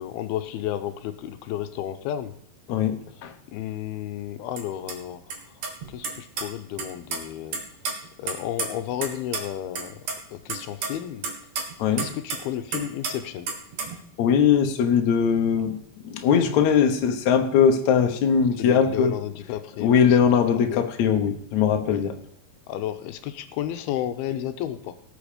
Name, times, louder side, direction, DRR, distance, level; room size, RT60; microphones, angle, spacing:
voice 1, 0.0-2.3 3.1-5.4 5.9-7.6 8.2-11.2 12.0-13.5 18.6-20.9 21.9-22.0 22.7-25.0, left 11 dB, 85° left, 9 dB, 2.6 m, -32 dB
voice 2, 2.7-3.3 11.8-12.1 14.2-15.8 16.1-19.1 19.8-22.1, left 7 dB, 60° left, 5 dB, 2.1 m, -20 dB
sound 1, 4.6-4.7 4.9-5.0 5.3-5.4 5.6-6.4 6.8-7.2 7.5-9.1 9.3-9.4 9.8-10.1 10.5-12.4 12.7-13.1 13.5-14.0, right 5 dB, 55° right, 2.7 m, -30 dB
18.5 x 7.1 x 5.1 m, 0.63 s
omnidirectional pair, 4.4 m